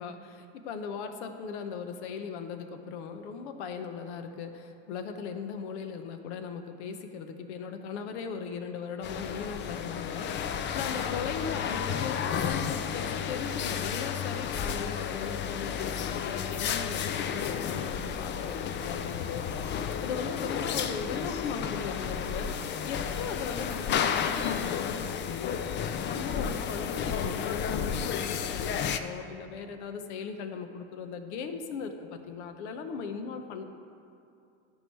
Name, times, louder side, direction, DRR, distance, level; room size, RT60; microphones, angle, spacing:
voice 1, 0.0-10.3 10.7-19.7 20.0-22.5 22.8-25.6 26.0-33.6, left 6 dB, 65° left, 7 dB, 1.0 m, -38 dB
sound 1, 9.0-29.0, left 8 dB, 30° left, 0.5 m, -32 dB
13.5 x 4.7 x 4.7 m, 2.5 s
hypercardioid pair, 95°, 36 cm